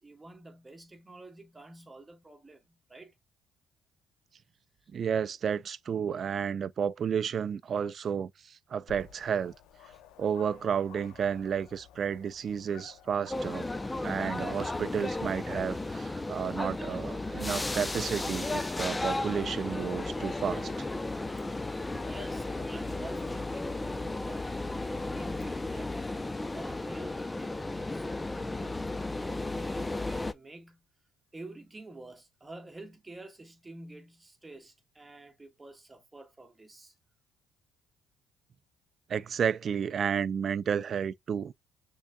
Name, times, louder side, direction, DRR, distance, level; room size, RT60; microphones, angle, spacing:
voice 1, 0.0-3.2 9.9-10.0 22.0-24.6 25.1-26.1 26.5-30.9 31.3-36.9, right 2 dB, 20° right, 1.6 m, -49 dB
voice 2, 4.9-9.5 10.2-13.7 14.0-20.9 39.1-41.5, right 7 dB, 50° right, 0.4 m, -32 dB
Dog, 8.9-25.4, left 8 dB, 85° left, 0.9 m, -56 dB
sound 1, 13.3-30.3, left 2 dB, 15° left, 0.5 m, -34 dB
6.2 x 3.7 x 2.3 m
supercardioid pair, 75°, 0 cm